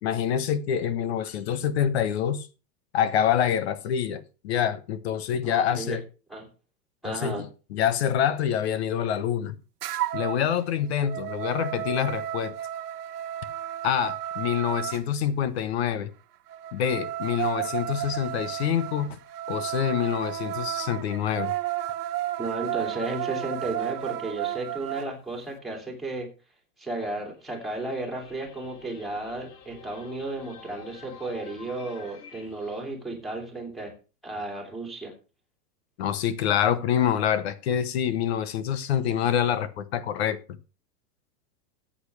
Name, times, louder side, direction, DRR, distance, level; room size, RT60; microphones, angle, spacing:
voice 1, 0.0-2.5 2.9-6.0 7.0-9.5 10.1-12.6 13.8-16.1 16.7-19.2 19.5-21.5 36.0-40.4, left 9 dB, 40° left, 1.0 m, -26 dB
voice 2, 5.4-6.0 6.3-6.5 7.0-7.4 22.4-26.3 26.8-33.9 34.2-35.1, right 2 dB, ahead, 2.5 m, -34 dB
sound 1, 9.8-10.4 10.8-15.0 16.5-25.1, right 13 dB, 70° right, 1.2 m, -32 dB
sound 2, 27.3-32.8, left 6 dB, 80° left, 3.5 m, -49 dB
15.0 x 8.7 x 3.3 m
supercardioid pair, 170°, 48 cm